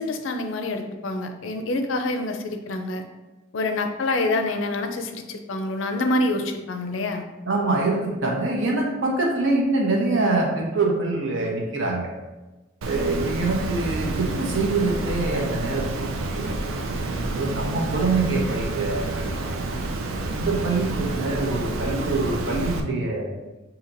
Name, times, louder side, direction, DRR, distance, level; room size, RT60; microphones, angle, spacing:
voice 1, 0.0-3.0 3.5-7.3, left 2 dB, 70° left, 6 dB, 0.5 m, -26 dB
voice 2, 7.5-12.1 12.8-16.5 17.1-19.7 20.3-23.3, right 3 dB, 65° right, -1 dB, 0.9 m, -25 dB
Water, 12.8-22.8, right 2 dB, 90° right, 0.5 m, -29 dB
5.7 x 2.9 x 2.6 m, 1.1 s
head